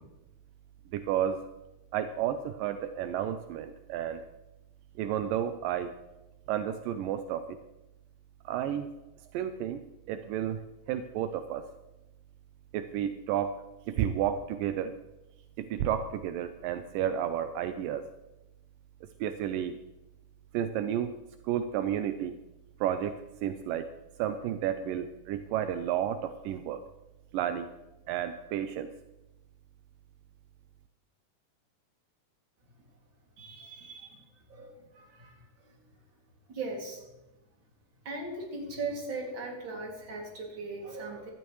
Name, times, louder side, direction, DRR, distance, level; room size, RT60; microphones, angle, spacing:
voice 1, 0.9-1.5 1.9-4.2 5.0-5.9 6.5-7.6 8.5-8.9 9.3-9.8 10.1-10.6 10.9-11.6 12.7-13.6 13.9-14.9 15.6-18.1 19.2-19.7 20.5-21.1 21.4-22.3 22.8-23.9 24.2-26.8 27.3-27.7 28.1-28.9, right 10 dB, 85° right, 9 dB, 1.9 m, -31 dB
voice 2, 33.4-34.2 34.5-35.8 36.5-37.0 38.0-41.3, right 3 dB, 35° right, -1 dB, 2.7 m, -39 dB
17.0 x 12.5 x 3.1 m, 1.0 s
omnidirectional pair, 4.5 m